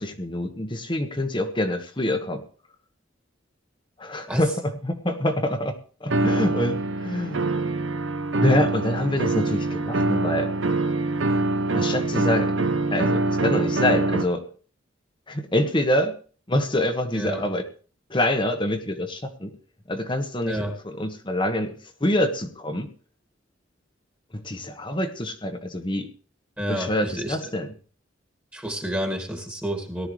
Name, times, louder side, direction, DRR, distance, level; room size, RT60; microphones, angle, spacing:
voice 1, 0.0-2.4 4.0-7.4 8.4-10.5 11.7-12.5 12.9-14.5 15.3-16.2 16.5-17.6 18.1-19.5 19.9-22.9 24.3-26.1 26.7-27.7, left 1 dB, 25° left, 5 dB, 1.4 m, -26 dB
sound 1, 6.1-14.2, right 2 dB, 75° right, 0.9 m, -24 dB
voice 2, 17.1-17.5 20.4-20.7 26.6-27.4 28.5-30.1, right 1 dB, 10° right, 4 dB, 2.1 m, -29 dB
18.5 x 12.0 x 3.3 m, 0.40 s
head